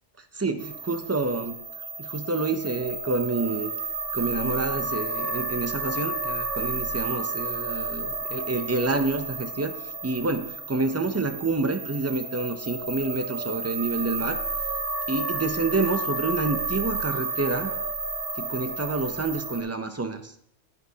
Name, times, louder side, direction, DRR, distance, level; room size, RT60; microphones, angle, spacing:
voice 1, 0.3-1.5 2.0-3.7 4.1-14.4 15.1-17.7 18.4-20.3, right 3 dB, 25° right, 7 dB, 0.3 m, -28 dB
sound 1, 0.6-19.6, right 3 dB, 60° right, 1.4 m, -31 dB
11.0 x 8.4 x 2.8 m, 0.71 s
omnidirectional pair, 1.1 m